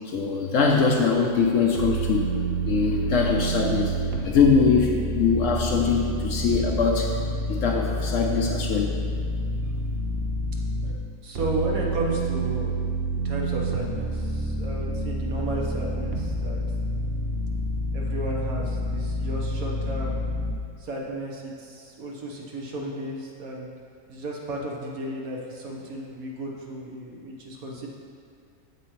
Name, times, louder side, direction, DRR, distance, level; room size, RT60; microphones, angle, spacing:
voice 1, 0.1-2.3 2.6-3.9 4.2-7.2 7.5-8.9, left 5 dB, 65° left, 1 dB, 0.9 m, -22 dB
sound 1, 1.8-10.9 11.3-20.5, right 1 dB, 50° right, 0.8 m, -28 dB
voice 2, 11.2-12.8 13.1-16.6 17.9-20.2 20.8-23.7 24.1-27.9, right 1 dB, 70° right, -2 dB, 1.4 m, -33 dB
7.8 x 7.7 x 3.1 m, 2.3 s
omnidirectional pair, 1.6 m